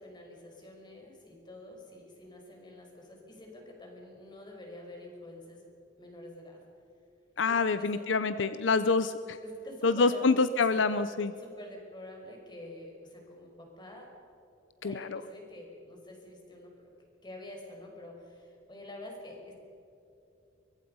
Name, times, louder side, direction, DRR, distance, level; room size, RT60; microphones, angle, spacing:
voice 1, 0.0-5.7 6.0-6.6 7.5-8.0 8.6-8.8 9.4-10.2 10.7-10.8 11.4-14.1 14.8-16.9 17.2-19.5, left 1 dB, 25° left, 1 dB, 5.3 m, -47 dB
voice 2, 7.4-9.4 9.8-11.3 14.8-15.2, left 4 dB, 70° left, 12 dB, 0.7 m, -26 dB
24.0 x 23.0 x 5.5 m, 2.8 s
head